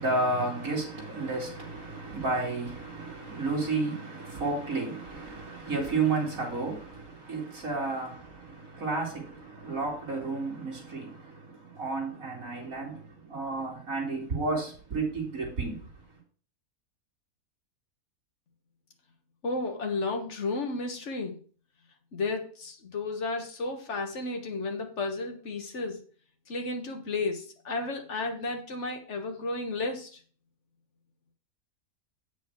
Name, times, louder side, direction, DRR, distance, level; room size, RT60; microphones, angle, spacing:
voice 1, 0.0-15.8, right 3 dB, 65° right, 3.3 m, -32 dB
voice 2, 19.4-21.4 22.1-26.0 26.5-30.2, left 3 dB, 50° left, 1.6 m, -33 dB
8.2 x 6.3 x 4.6 m
omnidirectional pair, 1.6 m